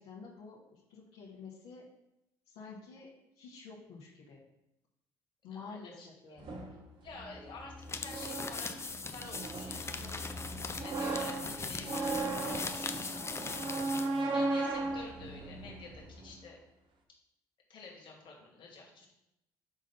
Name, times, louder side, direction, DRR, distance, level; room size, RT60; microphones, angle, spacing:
voice 1, 0.0-1.8 2.5-3.1 3.4-4.4 5.4-6.0 6.2-6.7 13.2-14.6, left 4 dB, 75° left, -7 dB, 1.5 m, -50 dB
voice 2, 5.4-6.4 7.0-8.7 9.1-16.6 17.7-19.1, left 3 dB, 50° left, -1 dB, 2.0 m, -50 dB
sound 1, 6.4-16.3, right 2 dB, 50° right, 1.2 m, -37 dB
frotar dos folios entre si, 7.8-14.2, left 4 dB, 25° left, 0.6 m, -40 dB
5.2 x 3.8 x 5.5 m, 0.87 s
hypercardioid pair, 60°, 10 cm